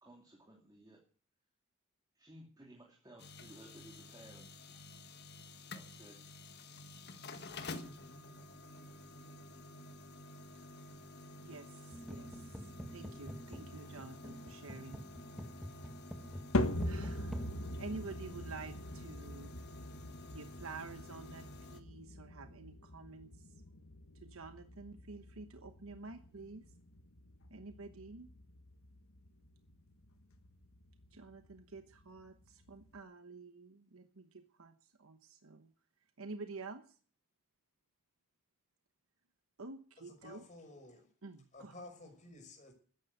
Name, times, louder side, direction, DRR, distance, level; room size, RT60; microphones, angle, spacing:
voice 1, 0.0-1.0 2.1-4.5 5.7-6.2, right 1 dB, 20° right, 2.9 m, -57 dB
sound 1, 3.2-21.8, left 2 dB, 50° left, 1.6 m, -51 dB
voice 2, 11.4-15.1 16.8-17.5 17.8-19.6 20.3-23.5 24.2-26.7 27.5-28.3 31.1-35.7 36.2-36.8 39.6-40.4 41.2-41.7, right 3 dB, 80° right, 1.1 m, -49 dB
sound 2, 11.9-18.6, equal, ahead, 1.7 m, -48 dB
sound 3, 16.5-33.0, left 1 dB, 90° left, 1.6 m, -42 dB
voice 3, 40.0-41.1 41.5-42.7, left 2 dB, 35° left, 5.9 m, -53 dB
13.5 x 10.5 x 8.1 m
head